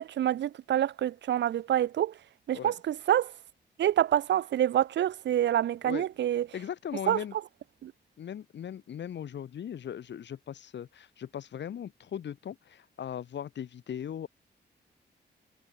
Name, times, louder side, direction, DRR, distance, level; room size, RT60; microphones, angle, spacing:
voice 1, 0.0-2.1 2.5-3.3 3.8-6.5 7.1-7.2 7.8-7.9, right 11 dB, 75° right, 0.6 m, -27 dB
voice 2, 6.5-7.4 8.2-14.3, left 9 dB, 75° left, 4.2 m, -38 dB
wide cardioid pair, 175°, 18 cm